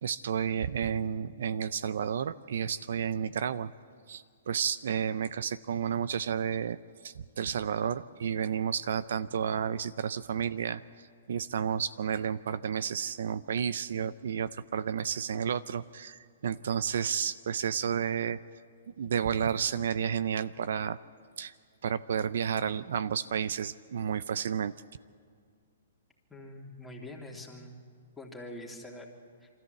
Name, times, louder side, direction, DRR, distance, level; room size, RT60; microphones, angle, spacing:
voice 1, 0.0-3.7 4.1-6.8 7.0-10.8 11.3-18.4 19.0-21.0 21.4-21.5 21.8-24.7, right 8 dB, 70° right, 15 dB, 0.5 m, -31 dB
voice 2, 26.3-27.8 28.2-29.1 29.4-29.5, left 1 dB, 5° left, -2 dB, 2.8 m, -44 dB
24.5 x 14.0 x 8.1 m, 2.1 s
hypercardioid pair, 130°, 0 cm